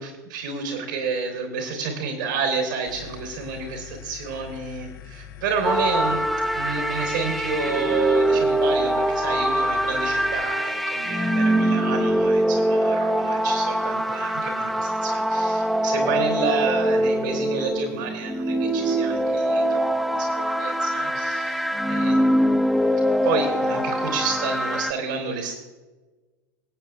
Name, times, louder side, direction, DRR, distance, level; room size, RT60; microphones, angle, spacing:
voice 1, 0.0-6.2 6.5-22.6 23.2-25.6, right 5 dB, 65° right, 3 dB, 3.5 m, -30 dB
sound 1, 2.9-10.4, left 10 dB, 65° left, 0.9 m, -43 dB
sound 2, 5.6-24.9, equal, ahead, 0.8 m, -23 dB
25.5 x 8.8 x 2.4 m, 1.2 s
figure-of-eight pair, 85°, 11 cm